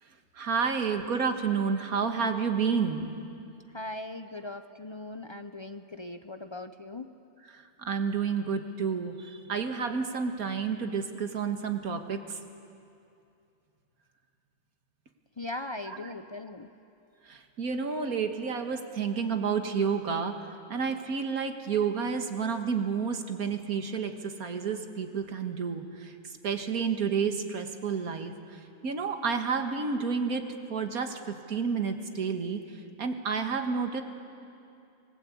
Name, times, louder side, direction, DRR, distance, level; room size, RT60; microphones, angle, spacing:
voice 1, 0.3-3.1 7.5-12.4 17.3-26.1 26.4-30.4 30.7-32.6 33.0-34.0, right 6 dB, 90° right, 6 dB, 2.0 m, -30 dB
voice 2, 3.7-7.1 15.4-16.7, left 2 dB, 35° left, 8 dB, 0.4 m, -39 dB
27.0 x 20.0 x 8.5 m, 2.6 s
omnidirectional pair, 1.5 m